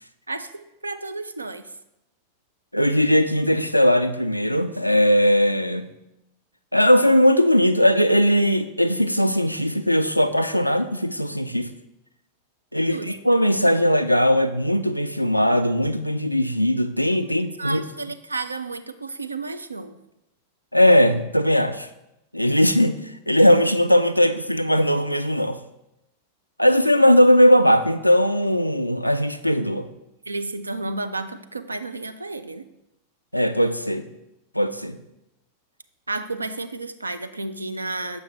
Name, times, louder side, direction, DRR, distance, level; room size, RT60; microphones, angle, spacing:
voice 1, 0.3-1.6 12.9-13.1 17.6-20.0 30.3-32.6 36.1-38.2, right 2 dB, 80° right, 9 dB, 0.4 m, -32 dB
voice 2, 2.7-5.9 6.7-11.7 12.7-17.8 20.7-21.9 22.3-25.6 26.6-29.9 33.3-34.1 34.5-35.0, equal, 90° left, 9 dB, 0.3 m, -19 dB
6.9 x 5.5 x 3.4 m, 0.89 s
figure-of-eight pair, 90°, 0 cm